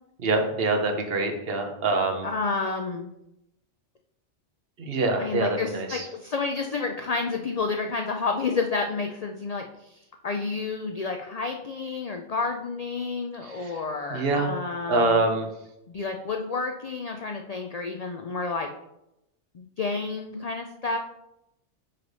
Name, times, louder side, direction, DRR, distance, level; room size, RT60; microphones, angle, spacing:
voice 1, 0.2-2.3 4.8-6.1 13.4-13.8 14.1-14.5 14.9-15.5, right 3 dB, 55° right, 4 dB, 1.1 m, -25 dB
voice 2, 2.2-3.1 5.2-15.2 15.9-18.7 19.5-21.0, left 4 dB, 75° left, 4 dB, 0.3 m, -30 dB
5.7 x 3.2 x 5.2 m, 0.85 s
omnidirectional pair, 1.3 m